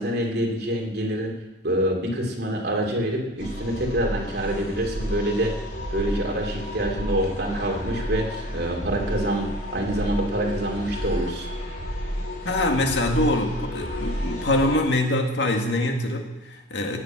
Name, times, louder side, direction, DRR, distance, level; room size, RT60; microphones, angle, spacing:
voice 1, 0.0-1.3 1.6-5.5 5.9-11.4, right 1 dB, 65° right, 0 dB, 2.9 m, -26 dB
sound 1, 3.4-14.8, equal, 50° left, 4.0 m, -31 dB
voice 2, 12.4-17.0, left 1 dB, 85° left, 3 dB, 2.0 m, -24 dB
17.5 x 7.5 x 7.5 m, 1.0 s
head